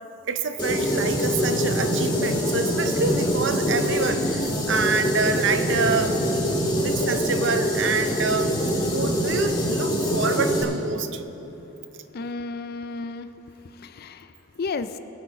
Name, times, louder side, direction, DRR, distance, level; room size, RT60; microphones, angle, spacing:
voice 1, 0.3-6.2 6.8-8.5 8.9-11.2, right 4 dB, 60° right, 9 dB, 0.7 m, -27 dB
sound 1, 0.6-10.6, equal, 20° left, 2.0 m, -24 dB
voice 2, 12.1-13.3 13.6-15.0, left 4 dB, 45° left, 12 dB, 0.4 m, -33 dB
20.5 x 8.6 x 4.1 m, 3.0 s
head